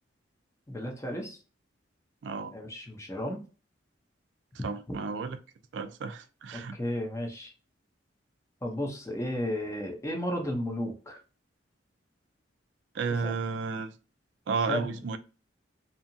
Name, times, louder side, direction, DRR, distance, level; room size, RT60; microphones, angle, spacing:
voice 1, 0.7-1.4 2.5-3.4 4.9-5.0 6.5-7.5 8.6-11.2 13.2-13.4 14.7-15.0, left 1 dB, 15° left, 0.6 m, -34 dB
voice 2, 2.2-2.5 4.6-5.4 5.7-6.8 12.9-13.9 14.5-15.2, right 5 dB, 70° right, 0.3 m, -32 dB
2.8 x 2.4 x 2.6 m
head